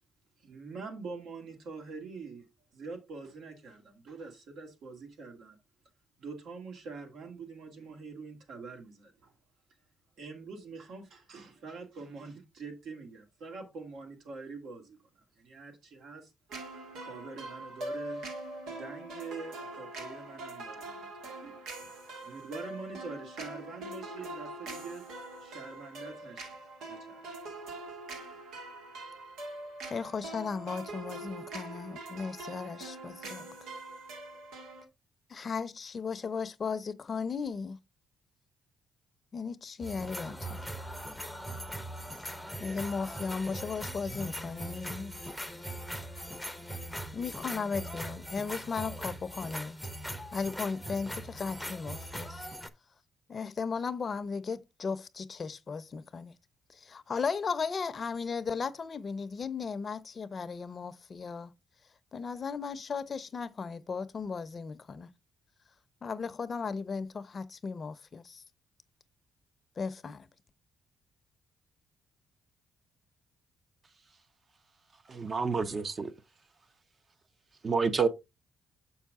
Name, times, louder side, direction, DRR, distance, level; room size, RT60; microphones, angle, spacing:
voice 1, 0.4-2.5 2.7-5.6 6.2-9.3 10.2-15.0 15.4-16.3 17.0-18.3 18.7-21.9 22.2-25.1 25.4-26.5 26.9-27.2 46.3-46.5, right 4 dB, 70° right, 2.0 m, -45 dB
sound 1, 16.5-34.9, right 2 dB, 90° right, 1.7 m, -43 dB
voice 2, 29.9-33.5 35.3-37.8 39.3-40.6 42.6-45.1 47.1-49.8 50.3-52.5 53.3-56.3 56.7-61.5 62.1-65.1 66.0-68.4 69.8-70.3, left 5 dB, 40° left, 0.7 m, -36 dB
sound 2, 39.8-52.7, equal, ahead, 0.8 m, -40 dB
voice 3, 75.1-76.1 77.6-78.1, right 5 dB, 35° right, 0.8 m, -28 dB
6.8 x 5.6 x 3.6 m
cardioid pair, 90°, 0 cm